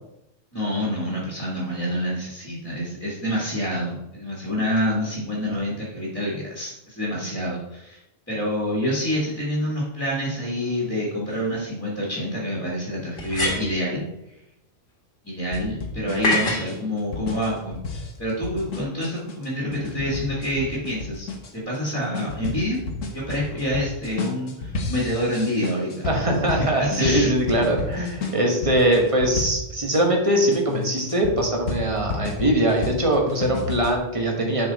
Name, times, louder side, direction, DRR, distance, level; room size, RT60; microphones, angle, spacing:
voice 1, 0.5-8.0 8.3-14.0 15.2-17.8 18.2-21.3 21.5-22.8 23.1-26.1 26.5-27.3, equal, 10° left, -5 dB, 1.9 m, -27 dB
sound 1, 11.3-11.4 13.2-13.9 16.2-16.7, left 1 dB, 45° left, 1.7 m, -24 dB
sound 2, 15.5-30.0 30.5-34.0, left 3 dB, 85° left, 1.4 m, -32 dB
voice 2, 26.0-34.7, right 1 dB, 25° right, 1 dB, 1.3 m, -22 dB
7.1 x 5.2 x 4.1 m, 0.87 s
omnidirectional pair, 1.3 m